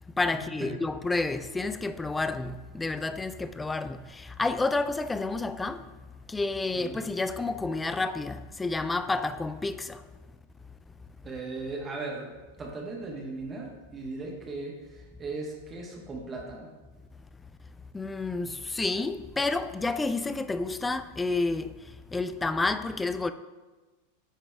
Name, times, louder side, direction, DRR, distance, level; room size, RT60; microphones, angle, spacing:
voice 1, 0.1-5.9 6.3-10.1 17.9-23.3, left 3 dB, 10° left, 0.3 m, -30 dB
voice 2, 11.2-12.3 12.6-16.7, right 3 dB, 20° right, 1.6 m, -37 dB
10.5 x 3.9 x 3.4 m
figure-of-eight pair, 90°, 0 cm